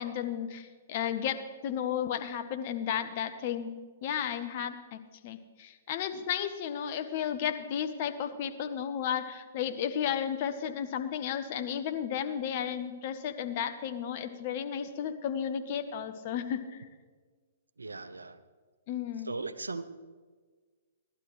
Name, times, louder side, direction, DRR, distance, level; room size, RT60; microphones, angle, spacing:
voice 1, 0.0-3.7 4.0-16.9 18.9-19.4, left 9 dB, 45° left, 9 dB, 1.1 m, -33 dB
voice 2, 17.8-18.4 19.3-19.8, right 3 dB, 85° right, 12 dB, 0.7 m, -37 dB
17.0 x 12.0 x 3.2 m, 1.4 s
figure-of-eight pair, 120°, 0 cm